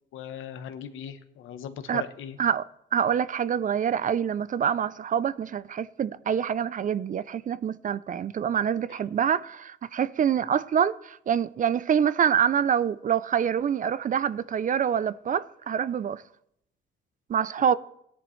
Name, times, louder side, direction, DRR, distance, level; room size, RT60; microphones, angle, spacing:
voice 1, 0.1-2.4, left 8 dB, 85° left, 1.0 m, -39 dB
voice 2, 2.9-16.2 17.3-17.7, right 8 dB, 40° right, 0.4 m, -26 dB
17.5 x 10.5 x 3.2 m
cardioid pair, 90°, 20 cm